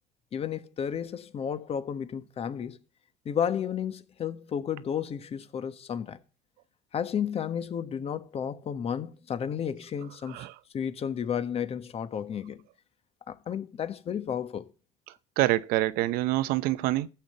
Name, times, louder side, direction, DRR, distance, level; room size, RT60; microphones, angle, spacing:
voice 1, 0.3-2.8 3.2-6.2 6.9-10.5 10.7-12.6 13.3-14.6, left 8 dB, 35° left, 1.4 m, -32 dB
voice 2, 10.3-10.6 15.4-17.1, right 16 dB, 65° right, 0.8 m, -26 dB
14.5 x 5.8 x 7.9 m
supercardioid pair, 105°, 16 cm